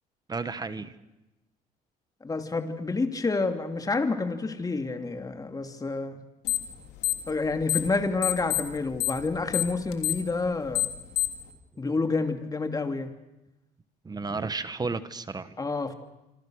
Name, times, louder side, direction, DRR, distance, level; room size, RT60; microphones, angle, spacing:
voice 1, 0.3-0.9 14.0-15.5, right 4 dB, 25° right, 12 dB, 1.4 m, -32 dB
voice 2, 2.2-6.2 7.3-10.9 11.8-13.1 15.6-15.9, left 3 dB, 20° left, 6 dB, 2.8 m, -29 dB
sound 1, 6.4-6.7 7.0-7.9 8.2-11.5, left 16 dB, 90° left, 3.2 m, -27 dB
27.0 x 26.0 x 6.5 m, 0.97 s
cardioid pair, 110°, 17 cm